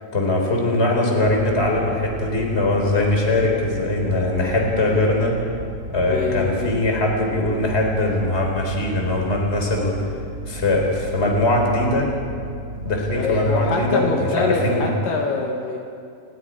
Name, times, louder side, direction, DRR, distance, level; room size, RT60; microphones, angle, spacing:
voice 1, 0.1-5.4 5.9-10.0 10.5-12.1 12.8-14.9, left 2 dB, 15° left, 1 dB, 3.7 m, -21 dB
sound 1, 1.2-13.9, right 1 dB, 15° right, 5.7 m, -34 dB
voice 2, 6.1-6.8 13.1-15.8, left 4 dB, 65° left, 0 dB, 3.2 m, -24 dB
30.0 x 20.5 x 5.0 m, 2.4 s
omnidirectional pair, 4.3 m